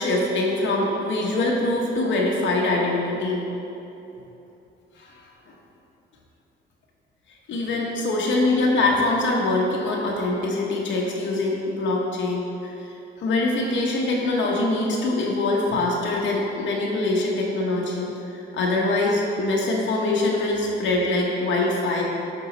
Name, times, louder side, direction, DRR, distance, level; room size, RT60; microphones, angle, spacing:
voice 1, 0.0-3.4 4.9-5.2 7.5-12.8 13.2-22.0, left 2 dB, 70° left, -2 dB, 0.9 m, -23 dB
8.0 x 3.8 x 3.9 m, 3.0 s
cardioid pair, 90°, 20 cm